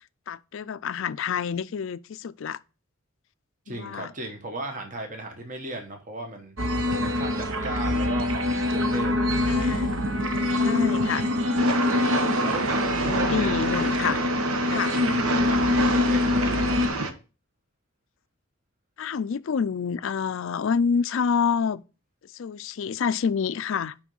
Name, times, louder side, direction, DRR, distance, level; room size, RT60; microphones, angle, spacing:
voice 1, 0.3-2.6 3.7-4.1 9.5-10.0 10.6-11.2 13.1-14.2 14.7-14.9 19.0-21.8 22.4-23.9, left 6 dB, 60° left, 0.4 m, -27 dB
voice 2, 3.7-6.5 7.0-9.1 12.4-12.7 13.0-13.5 14.7-16.7, right 2 dB, 35° right, 1.1 m, -36 dB
sound 1, 6.6-16.9, left 2 dB, 60° right, 1.0 m, -25 dB
Train, 11.6-17.1, right 3 dB, 85° right, 1.0 m, -28 dB
6.0 x 5.1 x 5.4 m
head